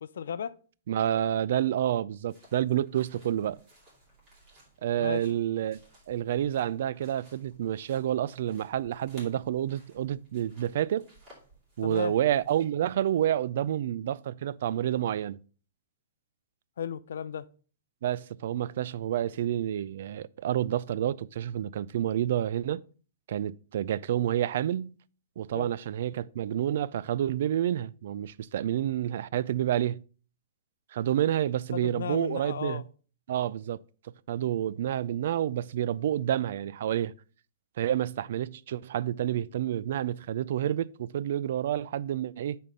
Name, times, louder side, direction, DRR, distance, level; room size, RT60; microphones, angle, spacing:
voice 1, 0.0-0.5 5.0-5.3 11.8-12.2 16.8-17.5 25.5-25.7 31.7-32.8, left 8 dB, 80° left, 0.5 m, -35 dB
voice 2, 0.9-3.6 4.8-5.8 6.1-11.1 11.8-15.4 18.0-22.8 23.3-24.9 25.4-30.0 30.9-32.8 33.3-33.8 34.3-37.1 37.8-42.6, right 11 dB, 55° right, 0.3 m, -29 dB
sound 1, 2.3-12.6, right 1 dB, 20° right, 3.2 m, -59 dB
7.0 x 4.3 x 5.1 m
hypercardioid pair, 170°, 0 cm